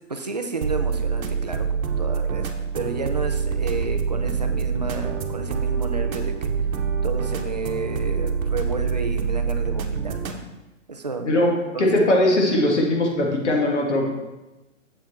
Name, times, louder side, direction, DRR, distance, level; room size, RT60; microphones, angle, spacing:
voice 1, 0.1-6.4 6.7-6.8 7.0-10.4 10.9-11.3 11.7-12.2, right 3 dB, 35° right, 6 dB, 0.4 m, -32 dB
sound 1, 0.6-10.4, right 6 dB, 90° right, 1.1 m, -25 dB
voice 2, 11.8-14.1, left 1 dB, 55° left, -1 dB, 2.1 m, -20 dB
7.4 x 5.8 x 4.3 m, 1.0 s
hypercardioid pair, 165°, 40 cm